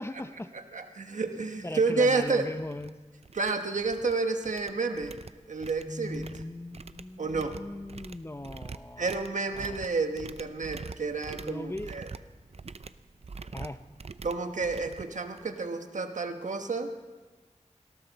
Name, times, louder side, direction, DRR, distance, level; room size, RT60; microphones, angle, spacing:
voice 1, 0.0-0.5 1.6-3.0 5.9-9.2 9.6-9.8 11.4-11.9 13.5-13.8, left 1 dB, 20° left, 10 dB, 0.7 m, -39 dB
voice 2, 0.7-2.5 3.3-5.2 5.5-6.3 7.2-7.6 9.0-12.1 14.2-16.9, right 3 dB, 90° right, 6 dB, 1.2 m, -30 dB
sound 1, 1.6-1.7 2.1-2.3 2.6-2.9 3.2-4.1 4.4-15.7, right 4 dB, 55° right, 0.6 m, -45 dB
19.0 x 17.5 x 4.1 m, 1.3 s
wide cardioid pair, 70°, 12 cm